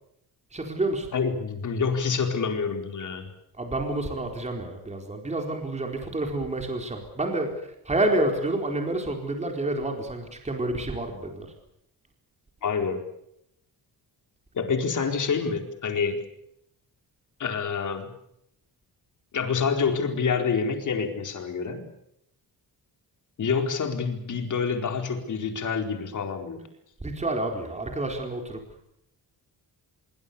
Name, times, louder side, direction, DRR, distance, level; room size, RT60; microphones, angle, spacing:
voice 1, 0.5-1.1 3.5-11.5 27.0-28.6, right 2 dB, 15° right, 3 dB, 4.3 m, -29 dB
voice 2, 1.1-3.3 12.6-13.0 14.5-16.2 17.4-18.1 19.3-21.9 23.4-26.6, left 5 dB, 50° left, 5 dB, 4.4 m, -27 dB
25.5 x 24.0 x 7.0 m, 0.77 s
wide cardioid pair, 170°, 40 cm